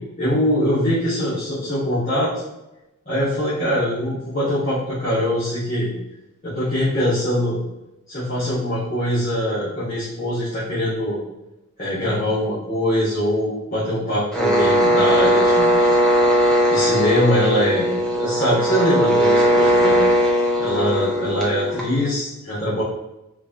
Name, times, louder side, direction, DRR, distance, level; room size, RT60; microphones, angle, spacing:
voice 1, 0.2-2.3 3.0-5.9 6.4-7.6 8.1-11.2 11.8-16.0 16.7-17.9 18.1-20.0 20.6-22.8, equal, 35° left, -12 dB, 1.2 m, -22 dB
sound 1, 14.3-22.1, equal, 5° left, 0.5 m, -18 dB
4.3 x 2.5 x 2.8 m, 0.95 s
head